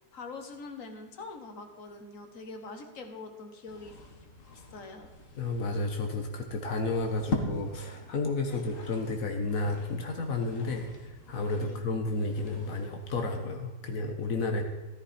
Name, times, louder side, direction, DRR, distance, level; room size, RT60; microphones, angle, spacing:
voice 1, 0.1-4.0 4.5-5.1 8.5-8.6 11.6-11.8, left 3 dB, 50° left, 6 dB, 0.9 m, -44 dB
sound 1, 3.7-13.4, left 2 dB, 35° left, 1.4 m, -42 dB
voice 2, 5.4-14.6, left 3 dB, 85° left, 4 dB, 0.7 m, -32 dB
14.0 x 14.0 x 4.3 m, 1.2 s
omnidirectional pair, 3.3 m